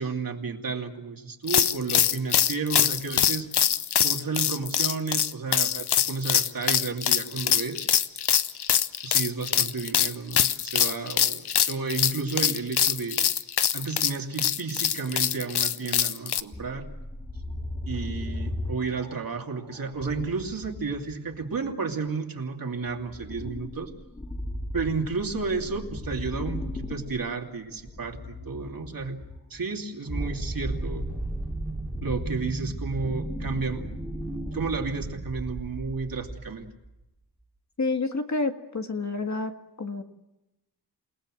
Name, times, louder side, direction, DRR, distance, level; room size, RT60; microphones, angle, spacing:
voice 1, 0.0-3.5 4.0-7.9 9.0-13.2 13.7-16.9 17.9-23.9 24.7-29.2 29.5-31.1 32.0-33.8 34.5-36.7, right 4 dB, 60° right, 2 dB, 2.8 m, -32 dB
sound 1, 1.5-16.4, left 9 dB, 85° left, 0.9 m, -24 dB
sound 2, 16.5-21.7 22.9-29.6 30.8-34.8, left 1 dB, 15° left, 1.9 m, -38 dB
sound 3, 30.1-36.9, right 2 dB, ahead, 2.8 m, -34 dB
voice 2, 37.8-39.5 39.8-40.0, left 3 dB, 45° left, 5 dB, 1.8 m, -28 dB
29.0 x 18.5 x 7.7 m, 0.96 s
wide cardioid pair, 135°, 39 cm